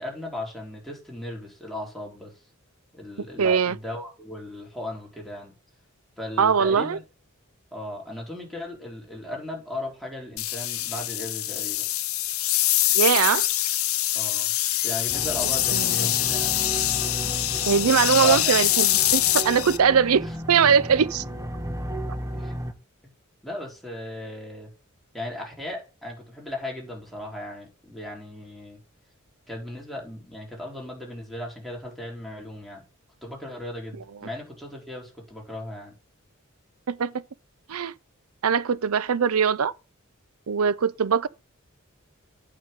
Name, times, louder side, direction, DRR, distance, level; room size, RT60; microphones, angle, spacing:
voice 1, 0.0-2.4 2.9-5.5 6.2-7.0 7.7-11.9 14.1-14.5 14.8-16.6 18.2-18.4 20.2-20.3 21.2-21.3 22.3-22.6 23.4-24.7 25.1-28.8 29.5-32.8 33.2-35.9, left 1 dB, ahead, 3.6 m, -36 dB
voice 2, 3.4-3.8 6.4-7.0 12.9-13.5 15.7-16.1 17.7-21.2 36.9-37.1 37.7-37.9 38.4-39.7 40.5-41.3, right 6 dB, 85° right, 0.6 m, -21 dB
sound 1, 10.4-19.8, left 14 dB, 75° left, 0.8 m, -24 dB
sound 2, 15.1-22.7, right 1 dB, 15° right, 1.1 m, -34 dB
8.9 x 7.1 x 3.6 m
head